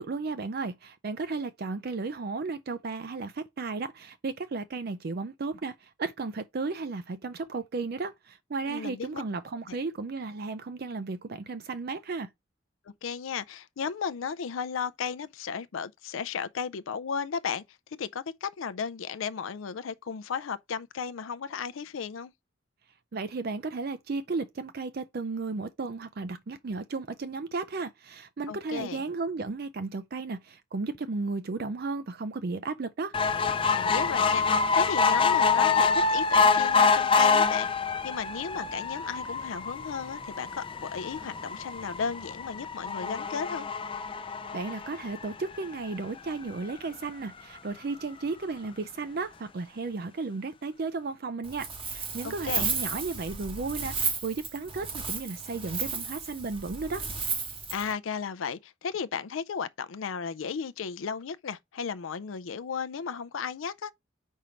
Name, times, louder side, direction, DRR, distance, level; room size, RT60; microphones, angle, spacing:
voice 1, 0.0-12.3 23.1-33.1 44.2-57.0, right 3 dB, 50° right, 0.5 m, -34 dB
voice 2, 8.7-9.2 13.0-17.6 18.0-22.3 28.5-29.0 33.7-37.7 38.0-43.7 52.2-52.7 57.7-63.9, left 6 dB, 75° left, 0.4 m, -34 dB
sound 1, 33.1-45.7 46.3-46.4 46.7-46.8 47.0-47.1, left 5 dB, 25° left, 0.5 m, -26 dB
Wind, 51.4-57.9, right 5 dB, 25° right, 1.1 m, -33 dB
5.4 x 4.4 x 5.0 m
head